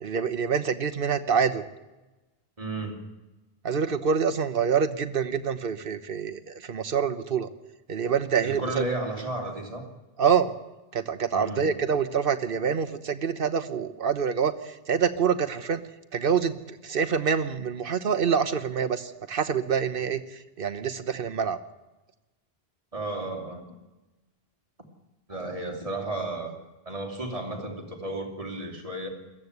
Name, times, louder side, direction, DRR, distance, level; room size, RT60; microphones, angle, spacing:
voice 1, 0.0-1.6 3.6-7.5 7.9-8.8 10.2-10.5 10.9-15.8 16.1-21.6, right 6 dB, 60° right, 9 dB, 1.2 m, -26 dB
voice 2, 2.6-3.0 8.4-9.8 11.3-11.7 22.9-23.6 25.3-26.5 26.8-29.1, right 2 dB, 35° right, 2 dB, 2.9 m, -33 dB
22.0 x 14.5 x 8.1 m, 1.1 s
omnidirectional pair, 1.1 m